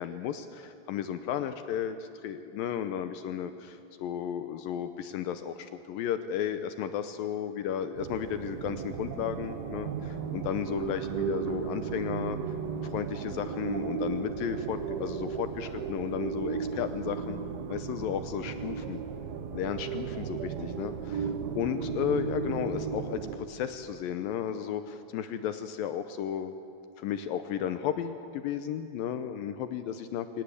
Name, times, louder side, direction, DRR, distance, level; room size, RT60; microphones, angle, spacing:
voice 1, 0.0-12.4 12.8-17.4 17.7-19.0 19.5-26.5 27.0-30.4, left 9 dB, 80° left, 10 dB, 2.2 m, -34 dB
sound 1, 8.0-23.4, right 7 dB, 70° right, 2.9 m, -35 dB
24.0 x 18.5 x 8.4 m, 2.7 s
omnidirectional pair, 4.8 m